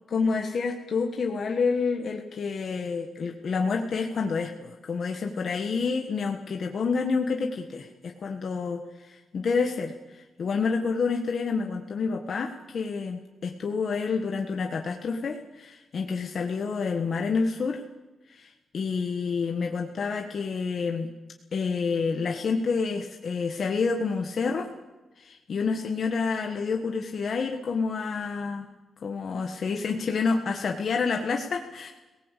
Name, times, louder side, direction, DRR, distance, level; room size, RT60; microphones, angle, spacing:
voice 1, 0.1-17.8 18.3-21.1 21.5-24.7 25.2-28.7 29.0-31.9, left 5 dB, 45° left, 3 dB, 1.5 m, -28 dB
25.0 x 18.5 x 8.4 m, 1.1 s
wide cardioid pair, 175°, 0 cm